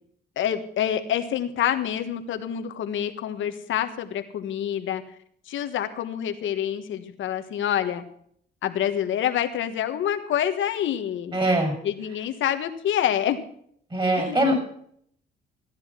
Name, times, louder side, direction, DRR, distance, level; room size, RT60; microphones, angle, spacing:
voice 1, 0.4-5.0 5.5-8.0 8.6-11.4 11.8-13.4 14.2-14.4, left 10 dB, 75° left, 7 dB, 1.5 m, -27 dB
voice 2, 11.3-11.7 13.9-14.6, right 1 dB, 25° right, 5 dB, 7.3 m, -22 dB
15.5 x 10.5 x 6.0 m, 0.65 s
cardioid pair, 90°, 20 cm